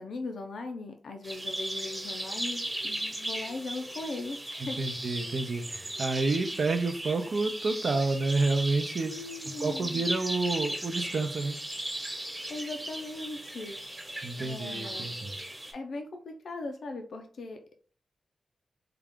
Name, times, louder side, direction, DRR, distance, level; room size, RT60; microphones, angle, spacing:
voice 1, 0.0-4.8 9.1-10.0 12.5-13.8 14.4-15.1 15.7-17.6, left 3 dB, 70° left, 5 dB, 0.5 m, -39 dB
sound 1, 1.2-15.7, right 1 dB, 15° right, 1.1 m, -37 dB
voice 2, 4.6-9.1 9.6-11.6 14.2-15.4, right 3 dB, 55° right, 7 dB, 0.6 m, -29 dB
3.7 x 2.4 x 3.6 m, 0.41 s
wide cardioid pair, 105°, 0 cm